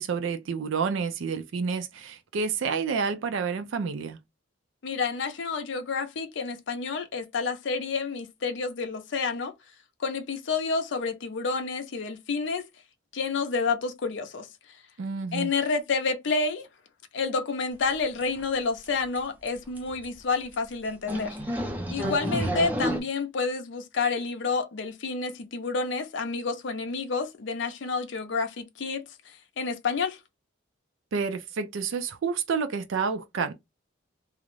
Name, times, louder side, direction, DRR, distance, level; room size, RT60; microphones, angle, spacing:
voice 1, 0.0-4.2 15.0-15.5 22.0-22.6 31.1-33.5, right 5 dB, 80° right, 0.4 m, -29 dB
voice 2, 4.8-9.5 10.0-12.7 13.1-14.5 15.3-16.7 17.1-21.4 21.9-29.0 29.6-30.2, left 4 dB, 70° left, 0.5 m, -29 dB
sound 1, 17.9-18.0 18.2-18.5 18.8-18.9 19.1-19.2 19.5-19.6 19.8-20.0 20.5-20.6 21.1-23.0, equal, 10° right, 0.4 m, -30 dB
2.3 x 2.0 x 3.0 m
head